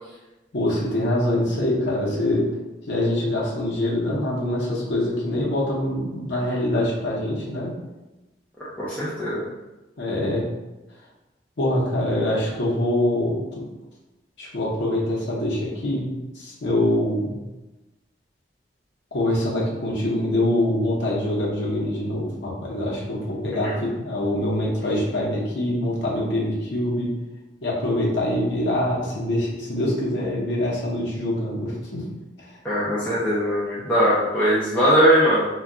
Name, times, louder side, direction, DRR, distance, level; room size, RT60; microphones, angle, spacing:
voice 1, 0.5-2.5 2.9-7.7 10.0-10.4 11.6-13.6 14.4-16.1 16.3-17.3 19.1-27.1 27.6-32.0 32.4-32.5, left 1 dB, 80° left, -4 dB, 0.7 m, -24 dB
voice 2, 8.8-9.5 23.6-23.7 32.6-35.5, equal, 10° left, -10 dB, 0.4 m, -20 dB
2.2 x 2.2 x 3.7 m, 1.1 s
head